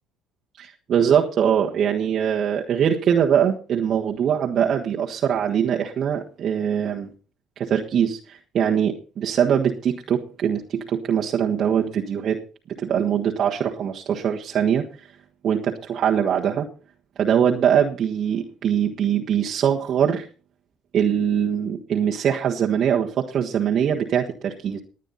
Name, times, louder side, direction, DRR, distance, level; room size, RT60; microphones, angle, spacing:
voice 1, 0.6-7.1 7.6-12.4 12.8-14.8 15.4-16.7 17.2-20.2 20.9-24.8, right 8 dB, 55° right, -1 dB, 1.4 m, -22 dB
19.5 x 9.2 x 4.1 m, 0.37 s
supercardioid pair, 75°, 0 cm